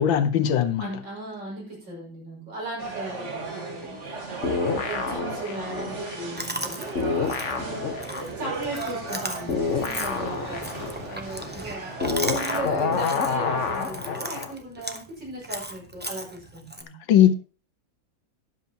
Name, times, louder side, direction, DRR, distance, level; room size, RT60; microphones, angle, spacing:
voice 1, 0.0-0.9 17.1-17.3, left 10 dB, 80° left, 1.7 m, -19 dB
voice 2, 0.8-17.0, right 2 dB, 75° right, 6.2 m, -37 dB
sound 1, 2.8-12.6, right 3 dB, 40° right, 1.8 m, -36 dB
sound 2, 4.4-6.7 6.9-14.5, left 5 dB, 45° left, 1.3 m, -28 dB
Chewing mastication, 6.4-16.8, right 1 dB, 15° right, 0.3 m, -37 dB
12.5 x 10.5 x 2.9 m
omnidirectional pair, 2.1 m